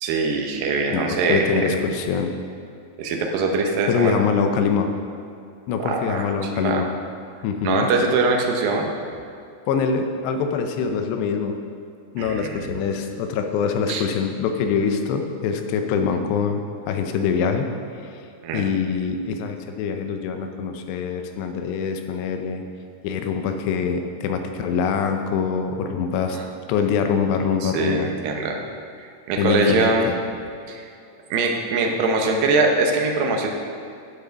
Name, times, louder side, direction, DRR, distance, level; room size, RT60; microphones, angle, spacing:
voice 1, 0.0-1.7 3.0-4.2 5.8-6.2 6.5-6.8 7.6-8.9 12.2-12.5 13.9-14.0 18.4-18.6 26.3-26.4 27.6-28.6 29.3-30.1 30.7-30.8 31.3-33.5, right 3 dB, 70° right, 1 dB, 2.3 m, -22 dB
voice 2, 0.9-2.3 3.9-4.9 5.7-6.9 7.4-7.9 9.7-11.6 12.2-17.8 18.0-18.3 18.5-22.6 23.0-26.4 26.7-28.1 29.4-30.2, left 6 dB, 80° left, 6 dB, 2.8 m, -24 dB
10.5 x 7.8 x 5.7 m, 2.4 s
omnidirectional pair, 5.1 m